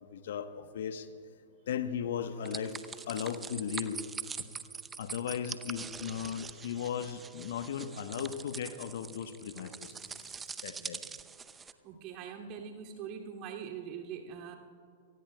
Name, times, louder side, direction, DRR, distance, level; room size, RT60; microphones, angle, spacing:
voice 1, 0.1-1.1 1.7-4.1 4.4-4.5 5.0-10.4 10.6-11.0, left 8 dB, 65° left, 10 dB, 1.0 m, -37 dB
sound 1, 2.5-11.7, right 5 dB, 15° right, 0.6 m, -43 dB
voice 2, 11.8-14.6, right 7 dB, 40° right, 1 dB, 2.4 m, -43 dB
28.0 x 19.0 x 2.2 m, 2.3 s
figure-of-eight pair, 105°, 0 cm